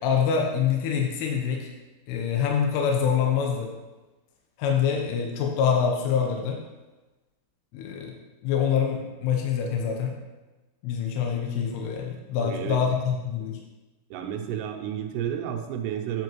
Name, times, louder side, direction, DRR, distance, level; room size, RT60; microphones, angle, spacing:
voice 1, 0.0-1.7 2.1-3.7 4.6-6.6 7.7-8.2 8.4-10.2 10.8-13.6, left 7 dB, 80° left, 1 dB, 2.9 m, -25 dB
voice 2, 12.4-12.8 14.1-16.2, right 9 dB, 80° right, 3 dB, 2.7 m, -31 dB
7.8 x 7.6 x 3.0 m, 1.1 s
omnidirectional pair, 4.8 m